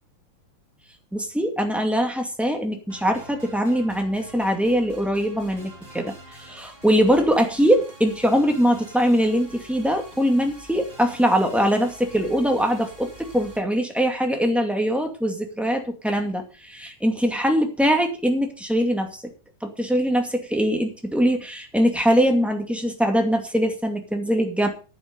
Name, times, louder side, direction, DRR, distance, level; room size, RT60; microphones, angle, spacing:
voice 1, 1.1-19.3 19.6-24.7, equal, ahead, 3 dB, 1.4 m, -22 dB
sound 1, 2.9-13.6, right 1 dB, 15° right, 3.0 m, -46 dB
10.5 x 10.0 x 5.3 m, 0.35 s
omnidirectional pair, 3.8 m